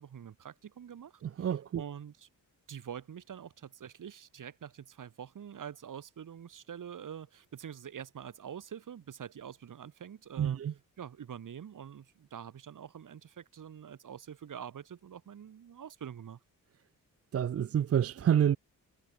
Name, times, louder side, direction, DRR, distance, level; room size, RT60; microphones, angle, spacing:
voice 1, 0.0-1.5 1.8-2.3 2.7-10.6 11.0-16.4, right 8 dB, 65° right, 3.6 m, -45 dB
voice 2, 1.2-1.8 10.4-10.7 17.3-18.6, right 9 dB, 45° right, 0.6 m, -28 dB
wide cardioid pair, 135°, 34 cm